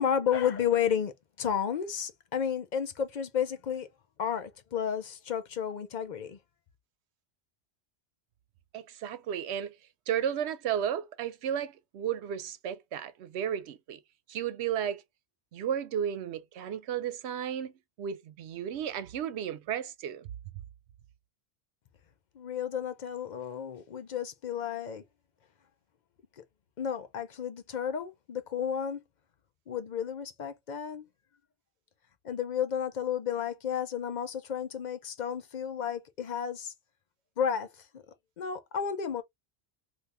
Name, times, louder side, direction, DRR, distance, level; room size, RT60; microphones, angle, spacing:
voice 1, 0.0-3.9 4.2-6.4 22.4-25.0 26.4-26.5 26.8-29.0 29.7-31.0 32.2-36.7 37.4-37.7 37.9-38.0 38.4-39.2, left 8 dB, 55° left, 0.6 m, -32 dB
voice 2, 8.7-9.7 10.1-14.0 14.3-15.0 15.5-17.7 18.0-20.3, right 9 dB, 85° right, 0.9 m, -33 dB
3.4 x 2.6 x 2.6 m
omnidirectional pair, 1.1 m